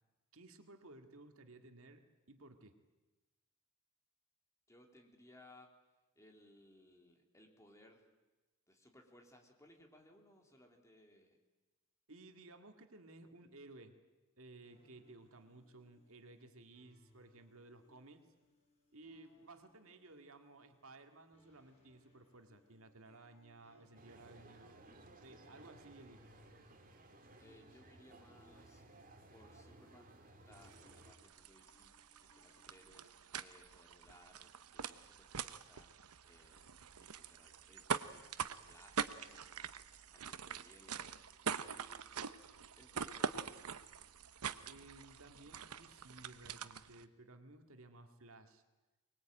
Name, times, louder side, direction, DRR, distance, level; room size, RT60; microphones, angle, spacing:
voice 1, 0.3-2.0 2.3-2.8 12.1-13.9 14.4-18.3 18.9-24.9 25.2-26.3 44.7-48.6, right 2 dB, 65° right, 6 dB, 2.0 m, -57 dB
voice 2, 4.7-5.7 6.1-8.1 8.7-11.4 27.4-28.8 29.3-31.9 32.2-39.6 40.1-41.1 41.7-42.1 42.8-43.6, left 1 dB, 15° left, 2 dB, 3.2 m, -64 dB
sound 1, 14.6-33.1, left 1 dB, 30° left, 7.4 m, -71 dB
sound 2, 23.9-31.1, right 2 dB, 40° right, 2.6 m, -59 dB
sound 3, 30.5-47.0, right 6 dB, 85° right, 1.0 m, -44 dB
23.5 x 20.5 x 9.0 m, 1.2 s
head